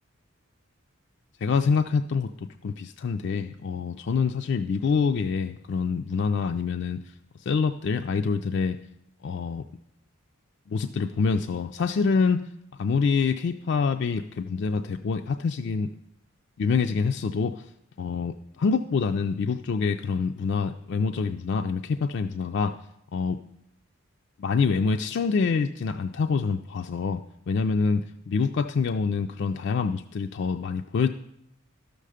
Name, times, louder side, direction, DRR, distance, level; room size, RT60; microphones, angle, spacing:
voice 1, 1.4-7.0 7.4-8.8 9.2-9.6 10.7-12.4 12.8-15.9 16.6-17.7 18.0-22.7 23.1-23.4 24.4-27.2 27.5-31.1, left 5 dB, 50° left, 7 dB, 0.3 m, -26 dB
12.5 x 6.6 x 4.9 m, 0.78 s
head